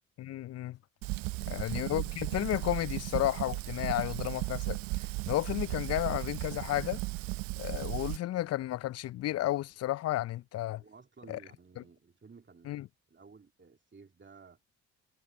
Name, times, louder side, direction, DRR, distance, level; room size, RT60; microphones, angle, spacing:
voice 1, 0.2-0.8 1.5-4.8 5.3-7.0 7.6-10.8 11.3-11.4 12.7-12.8, left 14 dB, 40° left, 0.5 m, -32 dB
Fire, 1.0-8.2, right 24 dB, 65° right, 0.5 m, -35 dB
voice 2, 1.3-1.8 10.7-14.6, right 5 dB, 30° right, 2.6 m, -56 dB
hypercardioid pair, 45°, 38 cm